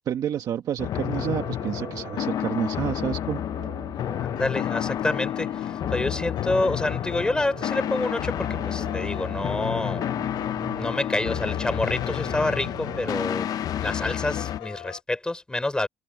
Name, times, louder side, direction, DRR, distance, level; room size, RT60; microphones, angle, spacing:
voice 1, 0.1-3.4, right 10 dB, 55° right, 1.5 m, -29 dB
sound 1, 0.8-14.6, left 11 dB, 50° left, 0.7 m, -30 dB
Organ, 1.2-13.3, right 14 dB, 80° right, 2.6 m, -43 dB
sound 2, 3.9-15.0, left 14 dB, 75° left, 3.9 m, -42 dB
voice 2, 4.2-10.0 10.8-13.5 13.8-15.9, left 2 dB, 10° left, 5.3 m, -28 dB
cardioid pair, 130°, 8 cm